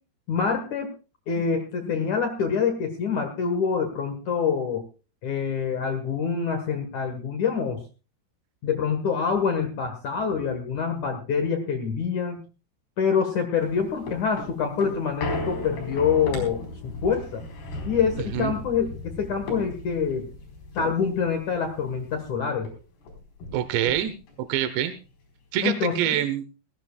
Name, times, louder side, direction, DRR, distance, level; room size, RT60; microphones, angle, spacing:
voice 1, 0.3-0.9 1.3-4.8 5.2-7.8 8.6-12.5 13.0-17.4 17.8-20.3 20.7-22.7 25.6-26.2, left 6 dB, 75° left, 5 dB, 1.7 m, -26 dB
sound 1, 13.6-22.3 22.6-22.7 23.0-24.4 24.9-25.0, left 2 dB, 50° left, 6.1 m, -36 dB
voice 2, 23.5-24.1 24.5-24.9 25.5-26.4, right 11 dB, 75° right, 11 dB, 2.6 m, -25 dB
20.0 x 16.5 x 2.3 m, 0.33 s
omnidirectional pair, 6.0 m